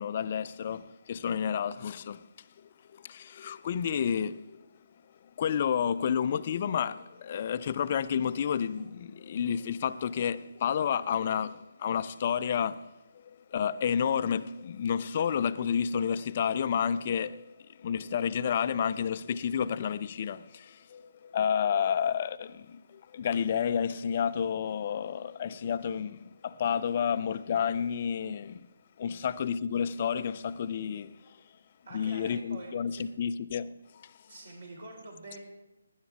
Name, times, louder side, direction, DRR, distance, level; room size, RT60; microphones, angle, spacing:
voice 1, 0.0-2.3 2.6-4.6 5.2-28.7 29.0-31.4 31.9-34.2, left 7 dB, 35° left, 0.4 m, -30 dB
voice 2, 31.8-33.2 34.3-35.4, right 2 dB, 55° right, 4.5 m, -46 dB
18.5 x 10.5 x 3.5 m
figure-of-eight pair, 150°, 0 cm